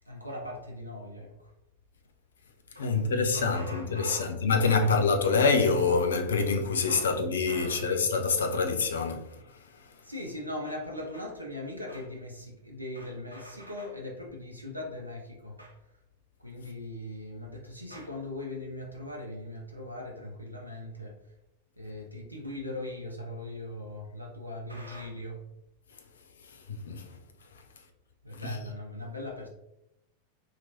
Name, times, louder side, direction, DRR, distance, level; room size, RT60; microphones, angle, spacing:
voice 1, 0.1-1.5 2.7-2.9 3.3-4.3 4.6-4.9 6.9-7.1 7.5-7.9 10.0-15.8 16.4-21.2 21.8-25.4 28.2-29.5, left 1 dB, 90° right, 0.5 m, -40 dB
voice 2, 2.8-9.4 26.7-27.1 28.3-28.6, left 4 dB, 65° left, 0.4 m, -26 dB
3.0 x 2.9 x 2.5 m
figure-of-eight pair, 90°, 0 cm